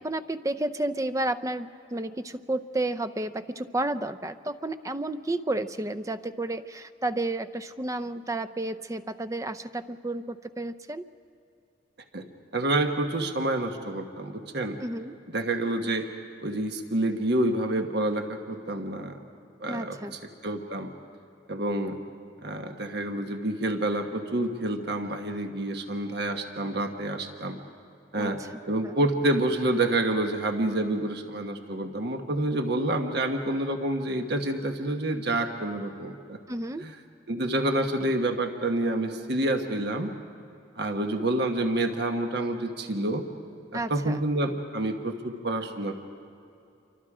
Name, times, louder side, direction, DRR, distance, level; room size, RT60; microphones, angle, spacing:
voice 1, 0.0-11.0 14.8-15.1 19.7-20.2 28.2-28.5 28.8-28.9 36.5-36.8 43.7-44.2, right 2 dB, 15° right, 12 dB, 0.6 m, -31 dB
voice 2, 12.5-14.8 15.3-16.1 16.4-19.2 19.6-20.9 21.5-22.0 22.4-27.6 28.1-28.4 28.7-36.4 36.8-36.9 37.3-40.1 40.7-43.2 43.7-45.9, right 1 dB, 60° right, 5 dB, 1.3 m, -28 dB
28.0 x 24.5 x 5.0 m, 2.6 s
head